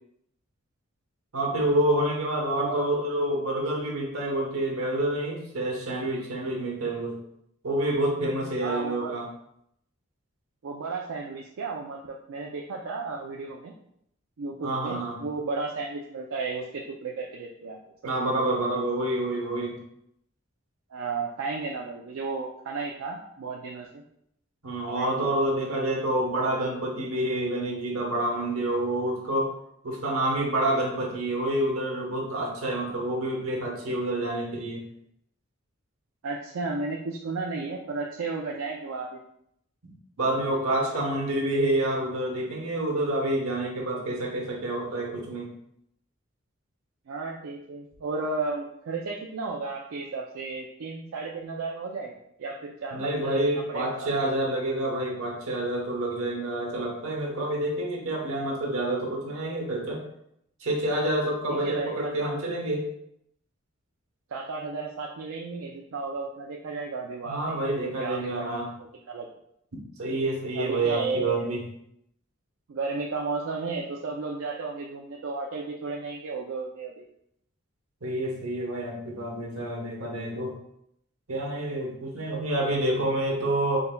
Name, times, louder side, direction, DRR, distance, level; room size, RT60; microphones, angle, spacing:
voice 1, 1.3-7.2 7.6-9.3 14.6-15.2 18.0-19.8 24.6-29.5 29.8-34.8 40.2-45.5 52.9-60.0 60.6-62.8 67.2-68.7 70.0-71.6 78.0-80.5 81.3-83.8, right 1 dB, 85° right, -1 dB, 1.0 m, -28 dB
voice 2, 8.6-9.1 10.6-13.7 14.4-17.8 20.9-24.0 24.9-25.3 36.2-39.2 47.1-54.1 61.5-62.1 64.3-67.5 68.0-68.7 69.0-69.3 70.6-71.5 72.7-77.0, right 4 dB, 70° right, 0 dB, 0.4 m, -33 dB
3.9 x 3.8 x 2.2 m, 0.75 s
head